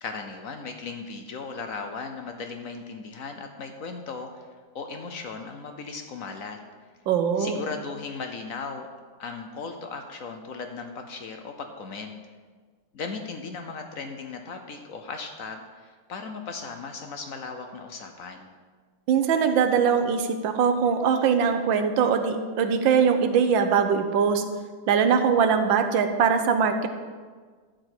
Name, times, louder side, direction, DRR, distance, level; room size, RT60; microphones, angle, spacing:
voice 1, 0.0-4.5 4.7-6.6 7.4-8.9 9.2-12.1 12.9-18.5, left 4 dB, 60° left, 5 dB, 0.9 m, -37 dB
voice 2, 7.1-7.6 19.1-24.4 24.9-26.9, right 6 dB, 75° right, 8 dB, 1.5 m, -22 dB
12.0 x 4.6 x 7.9 m, 1.5 s
omnidirectional pair, 2.2 m